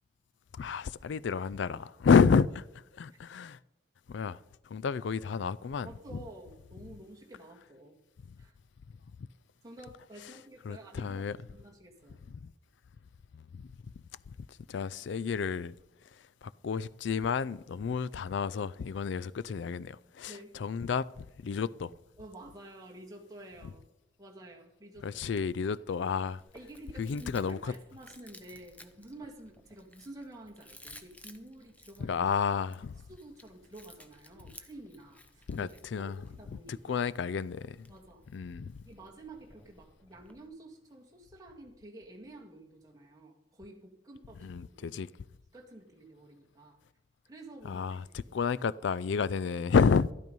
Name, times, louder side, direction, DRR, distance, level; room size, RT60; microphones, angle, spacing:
voice 1, 0.5-2.7 3.0-3.6 4.1-4.4 4.7-6.2 10.6-11.4 12.3-12.5 13.3-13.7 14.3-14.4 14.7-15.7 16.4-21.9 25.0-26.4 27.0-27.7 32.0-32.9 35.5-36.2 36.5-37.9 38.3-38.8 44.4-45.1 47.6-50.1, left 5 dB, 70° left, 0.4 m, -30 dB
voice 2, 5.8-8.0 8.4-8.5 9.6-12.2 20.3-20.5 22.2-23.8 24.2-25.2 26.5-32.2 33.1-37.1 37.9-38.2 38.8-44.5 44.7-44.9 45.5-46.8 47.3-48.3, right 1 dB, 20° right, 1.9 m, -50 dB
Chewing mastication, 26.4-40.5, left 2 dB, 10° left, 0.7 m, -57 dB
12.0 x 12.0 x 5.4 m
head